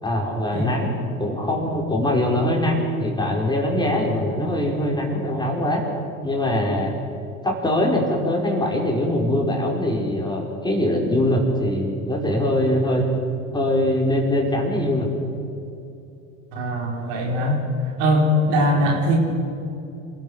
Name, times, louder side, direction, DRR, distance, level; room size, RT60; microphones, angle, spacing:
voice 1, 0.0-5.8 6.2-7.0 7.4-13.1 13.5-15.1, left 1 dB, 10° left, -1 dB, 5.3 m, -22 dB
voice 2, 16.5-17.6 18.0-19.2, equal, 65° right, 0 dB, 5.0 m, -21 dB
28.0 x 16.0 x 6.5 m, 2.7 s
hypercardioid pair, 75°, 40 cm